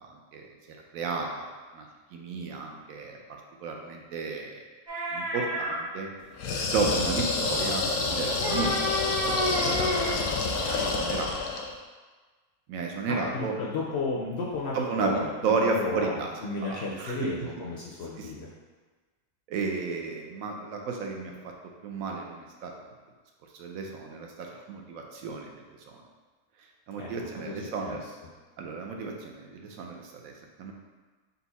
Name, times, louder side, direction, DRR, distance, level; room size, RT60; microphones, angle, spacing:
voice 1, 0.0-4.6 5.1-6.1 6.7-11.3 12.7-13.6 14.7-16.3 16.6-17.3 18.2-18.3 19.5-21.5 21.8-22.7 23.5-26.0 26.9-28.0 28.6-30.7, right 4 dB, 75° right, 2 dB, 1.0 m, -33 dB
sound 1, 4.9-5.8 8.1-10.2, equal, 30° right, 0.5 m, -30 dB
sound 2, 6.4-11.7, left 4 dB, 85° left, 1.1 m, -28 dB
voice 2, 13.1-18.5 27.0-27.1 27.4-28.0, left 3 dB, 70° left, -4 dB, 0.6 m, -33 dB
4.1 x 2.3 x 4.0 m, 1.4 s
omnidirectional pair, 1.6 m